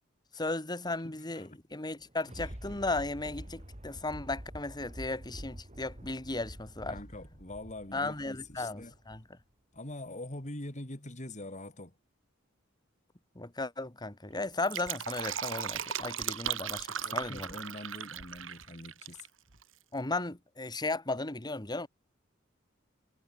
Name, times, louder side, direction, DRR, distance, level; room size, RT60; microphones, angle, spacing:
voice 1, 0.3-7.0 7.9-9.2 13.4-17.5 19.9-21.9, left 2 dB, 20° left, 1.8 m, -35 dB
voice 2, 1.0-1.6 2.5-2.6 6.9-8.9 9.7-11.9 17.0-19.3, left 1 dB, 35° left, 3.3 m, -44 dB
Thunder, 1.9-9.4 9.9-10.0, equal, 35° right, 3.7 m, -47 dB
Fill (with liquid), 14.5-19.3 19.5-19.6, right 8 dB, 75° right, 2.0 m, -37 dB
head